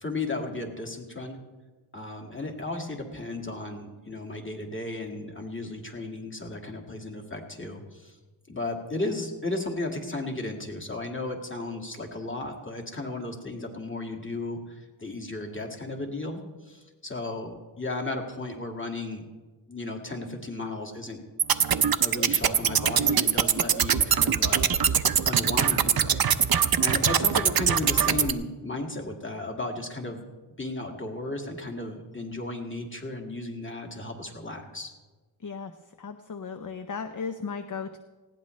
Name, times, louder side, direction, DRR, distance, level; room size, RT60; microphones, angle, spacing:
voice 1, 0.0-1.4 1.9-8.2 8.5-19.3 19.7-21.2 22.0-26.3 26.8-30.2 30.6-34.9, left 2 dB, 25° left, 2 dB, 2.1 m, -34 dB
sound 1, 21.4-28.3, right 8 dB, 45° right, 0.7 m, -23 dB
voice 2, 36.0-38.0, left 5 dB, 40° left, 7 dB, 0.7 m, -35 dB
19.5 x 16.5 x 3.2 m, 1.3 s
wide cardioid pair, 130°, 49 cm